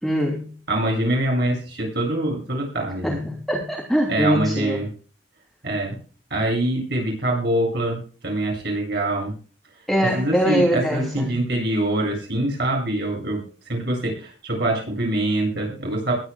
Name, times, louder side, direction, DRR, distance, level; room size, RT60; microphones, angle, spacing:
voice 1, 0.0-0.5 3.0-4.8 9.9-11.3, equal, ahead, -2 dB, 3.1 m, -22 dB
voice 2, 0.7-3.2 4.1-4.9 5.6-6.0 6.3-9.3 10.1-13.4 13.7-16.1, right 1 dB, 60° right, -1 dB, 7.9 m, -24 dB
22.0 x 11.5 x 2.3 m, 0.39 s
head